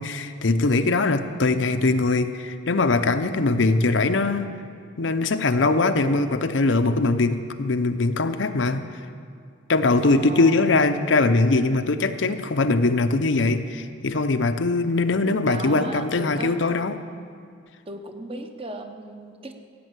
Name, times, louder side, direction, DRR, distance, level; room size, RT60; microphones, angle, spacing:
voice 1, 0.0-4.5 5.0-8.8 9.7-17.0, left 3 dB, 80° left, 9 dB, 0.7 m, -21 dB
voice 2, 10.0-10.7 15.5-16.5 17.9-19.5, right 1 dB, 30° right, 5 dB, 1.0 m, -36 dB
15.5 x 8.4 x 8.1 m, 2.2 s
head